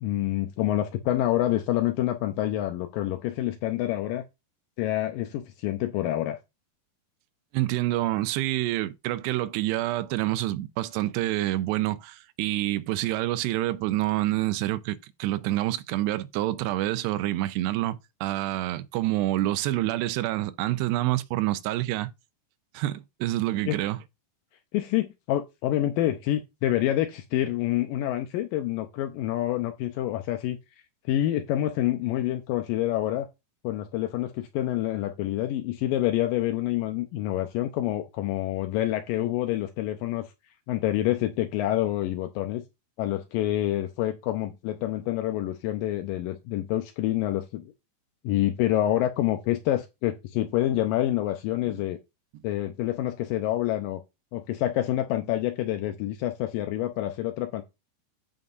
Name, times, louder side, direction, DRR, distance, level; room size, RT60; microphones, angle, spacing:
voice 1, 0.0-4.2 4.8-6.4 23.7-23.8 24.7-30.6 31.1-33.3 33.6-40.3 40.7-42.6 43.0-47.7 48.2-52.0 52.4-54.0 54.3-57.6, left 13 dB, 85° left, 2.0 m, -27 dB
voice 2, 7.5-22.1 22.7-24.0, right 16 dB, 85° right, 2.8 m, -27 dB
15.0 x 5.5 x 2.5 m
omnidirectional pair, 4.8 m